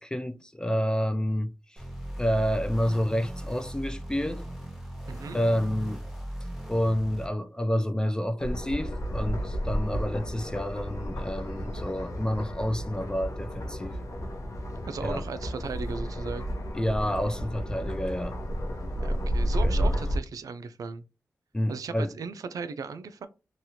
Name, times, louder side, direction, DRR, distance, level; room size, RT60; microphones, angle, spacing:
voice 1, 0.0-1.8 2.2-4.4 5.3-6.0 6.7-14.0 15.0-15.2 16.7-18.4 19.6-19.9 21.5-22.1, equal, 15° left, 0.4 m, -29 dB
sound 1, 1.8-7.3, equal, 5° right, 0.9 m, -38 dB
voice 2, 5.1-5.4 14.9-16.5 19.0-21.0 21.7-23.3, right 5 dB, 80° right, 0.3 m, -36 dB
sound 2, 8.4-20.2, equal, 65° left, 0.8 m, -32 dB
2.9 x 2.3 x 2.8 m
cardioid pair, 50°, 6 cm